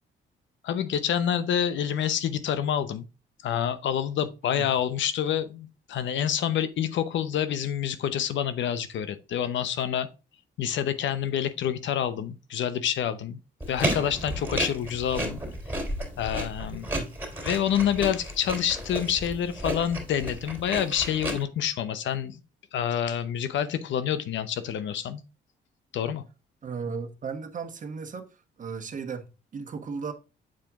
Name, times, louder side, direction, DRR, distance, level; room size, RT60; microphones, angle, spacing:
voice 1, 0.6-3.0 3.4-10.1 10.6-13.4 13.7-15.4 16.2-16.9 17.4-22.4 22.7-25.2 25.9-26.2, left 9 dB, 70° left, 0.8 m, -27 dB
sound 1, 13.6-21.4, right 1 dB, 10° right, 3.2 m, -32 dB
voice 2, 26.6-28.3 28.6-30.1, right 5 dB, 40° right, 1.2 m, -35 dB
7.5 x 4.4 x 3.6 m
cardioid pair, 90°, 20 cm